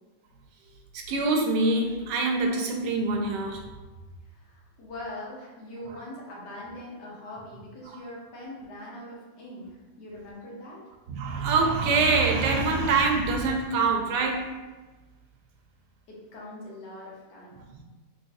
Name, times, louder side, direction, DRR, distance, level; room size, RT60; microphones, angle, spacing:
voice 1, 0.9-3.7 5.9-6.0 7.9-8.0 11.1-14.6 17.7-17.8, right 3 dB, 90° right, 2 dB, 1.2 m, -25 dB
voice 2, 4.3-10.8 16.1-17.7, left 1 dB, 85° left, -5 dB, 1.6 m, -42 dB
3.7 x 3.1 x 2.6 m, 1.2 s
omnidirectional pair, 1.8 m